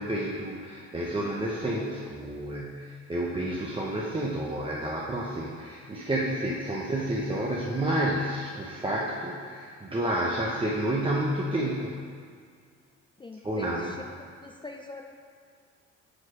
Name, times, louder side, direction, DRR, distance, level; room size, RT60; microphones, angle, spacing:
voice 1, 0.0-12.0 13.4-14.0, right 1 dB, 15° right, -4 dB, 0.8 m, -30 dB
voice 2, 13.2-14.1 14.4-15.0, left 3 dB, 15° left, 2 dB, 0.4 m, -43 dB
6.0 x 4.9 x 4.9 m, 2.1 s
cardioid pair, 90°, 30 cm